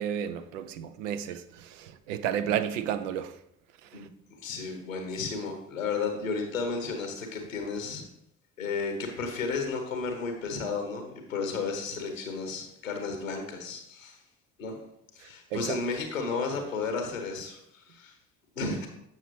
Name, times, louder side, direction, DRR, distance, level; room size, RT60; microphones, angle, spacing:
voice 1, 0.0-1.4 1.8-3.3 15.5-15.8, right 9 dB, 75° right, 0.5 m, -31 dB
voice 2, 4.4-8.0 8.6-14.2 14.6-14.8 15.1-17.6 17.9-18.1 18.6-18.9, left 4 dB, 90° left, 1.0 m, -33 dB
7.9 x 5.9 x 3.1 m
figure-of-eight pair, 50°, 39 cm